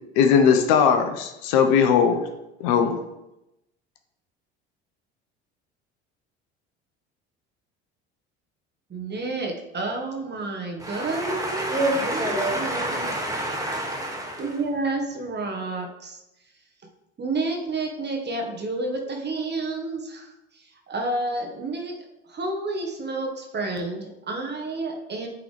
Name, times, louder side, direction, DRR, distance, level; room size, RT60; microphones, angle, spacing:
voice 1, 0.2-2.2 2.6-3.0, left 7 dB, 65° left, 6 dB, 0.8 m, -19 dB
voice 2, 8.9-11.7 12.0-13.1 14.4-16.2 17.2-21.9 22.3-25.3, right 2 dB, 30° right, 2 dB, 1.3 m, -30 dB
voice 3, 10.8-14.5, right 1 dB, 10° right, -1 dB, 2.1 m, -27 dB
8.5 x 3.8 x 3.4 m, 0.92 s
hypercardioid pair, 70°, 33 cm